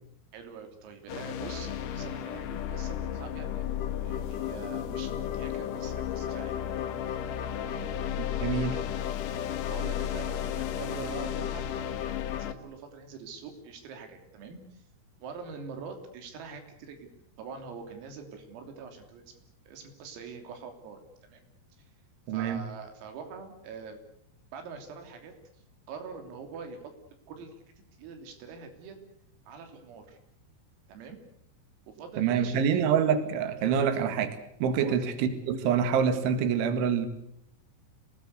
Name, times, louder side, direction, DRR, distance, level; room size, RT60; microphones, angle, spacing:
voice 1, 0.3-6.6 7.6-7.9 8.6-8.9 9.7-14.9 15.2-17.1 17.4-19.3 19.7-21.4 22.3-24.0 24.5-26.9 27.3-27.6 28.0-29.0 29.5-30.2 30.9-31.2 31.9-32.8 34.8-35.0, right 5 dB, 90° right, 5 dB, 5.9 m, -44 dB
sound 1, 1.1-12.5, left 10 dB, 85° left, 1.8 m, -33 dB
voice 2, 8.4-8.8 22.3-22.6 32.2-37.1, right 7 dB, 70° right, 9 dB, 4.2 m, -26 dB
27.0 x 19.0 x 8.2 m, 0.73 s
omnidirectional pair, 5.9 m